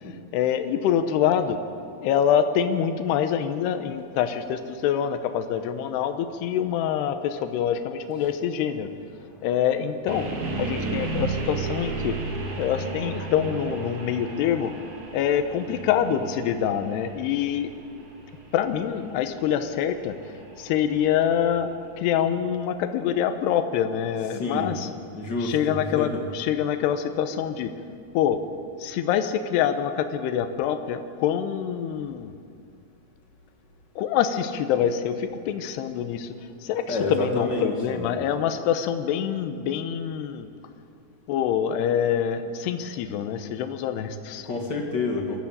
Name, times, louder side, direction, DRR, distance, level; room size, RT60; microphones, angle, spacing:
voice 1, 0.3-1.6 2.0-8.9 9.4-10.3 10.6-12.2 12.6-14.7 15.1-17.7 18.5-20.1 20.6-24.9 25.4-27.7 28.1-28.4 28.8-32.3 34.0-40.5 41.3-44.5, left 9 dB, 75° left, 8 dB, 3.0 m, -25 dB
sound 1, 10.1-22.0, right 3 dB, 45° right, 3.6 m, -34 dB
voice 2, 24.2-24.8 25.1-26.3 36.9-38.2 44.4-45.4, left 2 dB, 40° left, 1 dB, 1.6 m, -29 dB
22.5 x 14.0 x 8.8 m, 2.3 s
omnidirectional pair, 5.1 m